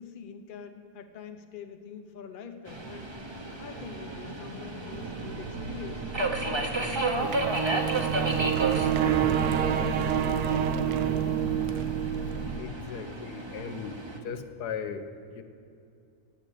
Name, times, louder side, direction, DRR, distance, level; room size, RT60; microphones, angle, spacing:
voice 1, 0.0-3.1 3.6-6.1 6.8-8.6 9.0-11.6, left 6 dB, 40° left, 6 dB, 0.8 m, -45 dB
Subway metro underground, 2.7-14.2, right 2 dB, 20° right, 0.8 m, -33 dB
sound 1, 4.9-12.6, right 8 dB, 75° right, 1.2 m, -28 dB
voice 2, 12.6-14.0 14.2-15.4, left 6 dB, 85° left, 8 dB, 1.4 m, -37 dB
9.9 x 7.7 x 8.3 m, 2.5 s
omnidirectional pair, 1.7 m